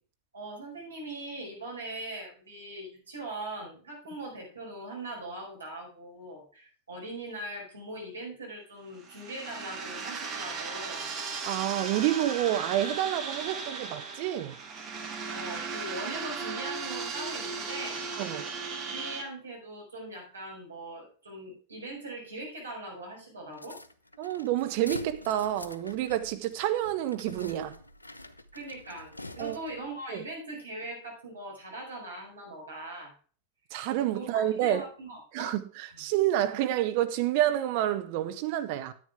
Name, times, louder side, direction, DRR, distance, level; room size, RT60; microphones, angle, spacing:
voice 1, 0.3-11.0 15.3-18.0 18.8-23.8 28.5-33.1 34.1-35.5, right 1 dB, 75° right, 4.7 m, -41 dB
sound 1, 8.9-19.2, right 5 dB, 30° right, 2.1 m, -36 dB
voice 2, 11.5-14.5 18.2-18.5 24.2-27.8 29.4-29.6 30.1-30.2 33.7-34.8 35.3-35.6 36.0-38.9, right 12 dB, 45° right, 0.8 m, -28 dB
sound 2, 23.5-29.9, left 1 dB, 85° left, 0.6 m, -45 dB
10.0 x 8.9 x 3.5 m
figure-of-eight pair, 90°, 0 cm